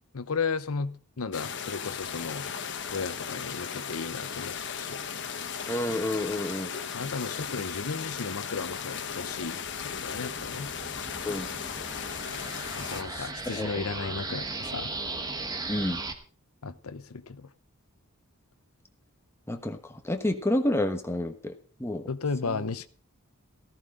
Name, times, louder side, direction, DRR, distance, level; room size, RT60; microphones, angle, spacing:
voice 1, 0.1-2.4 2.9-5.0 6.9-9.6 9.8-10.7 12.8-14.9 16.6-17.5 22.1-22.9, left 4 dB, 75° left, 0.8 m, -34 dB
sound 1, 1.3-13.0, left 7 dB, 55° left, 1.2 m, -36 dB
voice 2, 5.6-6.7 11.2-11.5 13.1-14.1 15.7-16.0 19.5-22.1 22.4-22.6, left 1 dB, 10° left, 1.2 m, -30 dB
sound 2, 9.0-16.1, right 3 dB, 20° right, 1.2 m, -38 dB
14.0 x 13.5 x 3.8 m
head